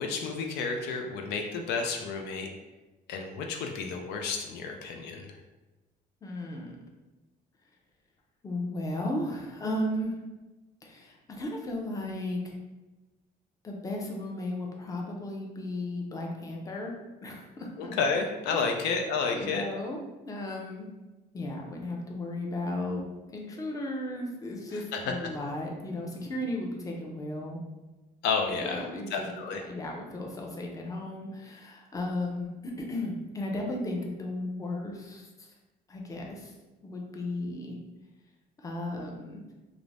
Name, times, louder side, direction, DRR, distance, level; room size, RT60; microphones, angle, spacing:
voice 1, 0.0-2.5 3.1-5.4 17.8-19.6 24.7-25.1 28.2-29.6, left 5 dB, 85° left, 3 dB, 0.4 m, -31 dB
voice 2, 6.2-6.7 8.4-10.1 10.8-12.6 13.6-16.9 17.2-17.9 18.5-18.7 19.3-20.9 21.3-23.1 23.3-27.6 28.6-29.3 29.6-35.3 35.9-36.5 36.8-37.8 38.6-39.4, left 1 dB, 20° left, 0 dB, 0.5 m, -35 dB
2.4 x 2.0 x 3.2 m, 1.1 s
cardioid pair, 110°, 17 cm